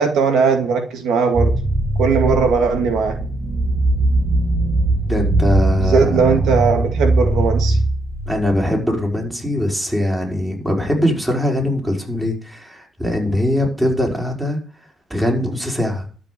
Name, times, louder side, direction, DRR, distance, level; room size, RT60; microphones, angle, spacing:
voice 1, 0.0-1.5 2.0-3.2 5.8-7.8, right 5 dB, 80° right, 2.1 m, -18 dB
sound 1, 1.3-8.9, right 2 dB, 25° right, 2.4 m, -20 dB
voice 2, 5.1-6.2 8.3-14.6 15.1-16.1, left 1 dB, 10° right, 5.0 m, -21 dB
12.5 x 6.2 x 8.4 m
cardioid pair, 90°, 0 cm